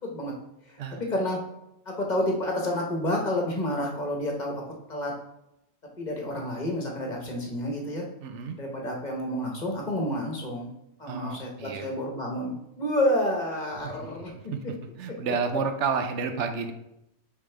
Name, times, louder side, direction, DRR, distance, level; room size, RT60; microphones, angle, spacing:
voice 1, 0.0-0.3 0.9-1.4 1.9-4.6 4.9-5.1 6.0-8.0 8.6-10.7 11.0-14.3, left 1 dB, 40° left, 0 dB, 1.2 m, -29 dB
voice 2, 8.2-8.6 11.1-11.9 13.8-13.9 14.5-14.6 15.0-16.7, right 5 dB, 80° right, 6 dB, 1.0 m, -30 dB
8.4 x 3.5 x 3.3 m, 0.84 s
omnidirectional pair, 1.2 m